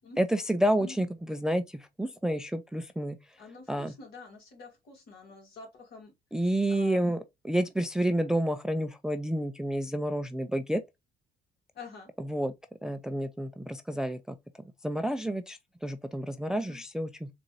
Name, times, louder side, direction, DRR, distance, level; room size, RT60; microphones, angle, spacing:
voice 1, 0.2-3.2 3.7-3.9 6.3-10.8 12.2-12.5 12.8-14.2 14.8-17.3, right 1 dB, 5° right, 0.3 m, -29 dB
voice 2, 3.4-6.1 6.7-7.1 11.7-12.1 16.6-16.8, left 3 dB, 65° left, 2.0 m, -47 dB
3.8 x 2.5 x 2.9 m
cardioid pair, 110°, 17 cm